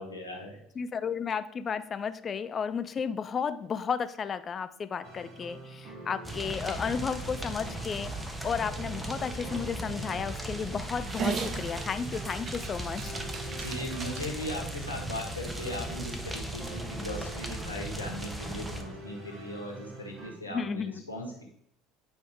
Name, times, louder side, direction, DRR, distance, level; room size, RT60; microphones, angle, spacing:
voice 1, 0.0-0.6 13.5-21.4, left 1 dB, 85° left, 0 dB, 1.6 m, -38 dB
voice 2, 0.8-8.1 8.4-13.1 20.5-21.0, left 6 dB, 30° left, 12 dB, 0.5 m, -33 dB
sound 1, 5.0-20.3, right 1 dB, 55° right, 2.1 m, -46 dB
sound 2, 6.2-18.8, right 1 dB, 10° right, 1.2 m, -37 dB
Dog, 11.0-16.4, right 6 dB, 40° right, 0.8 m, -39 dB
9.1 x 5.1 x 3.5 m, 0.68 s
figure-of-eight pair, 65°, 0 cm